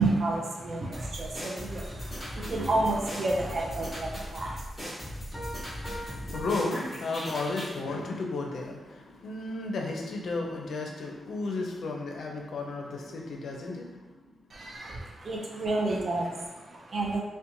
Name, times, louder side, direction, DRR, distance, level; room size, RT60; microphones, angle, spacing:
voice 1, 0.0-4.6 14.5-17.2, right 2 dB, 45° right, -1 dB, 0.4 m, -30 dB
sound 1, 0.9-7.8, equal, 5° right, 1.1 m, -39 dB
sound 2, 2.3-5.8, right 1 dB, 25° right, 0.7 m, -45 dB
Piano, 5.3-7.8, equal, 15° left, 0.5 m, -43 dB
voice 2, 5.7-14.3, left 3 dB, 75° left, 0 dB, 0.4 m, -34 dB
2.8 x 2.1 x 2.6 m, 1.2 s
wide cardioid pair, 120°, 0 cm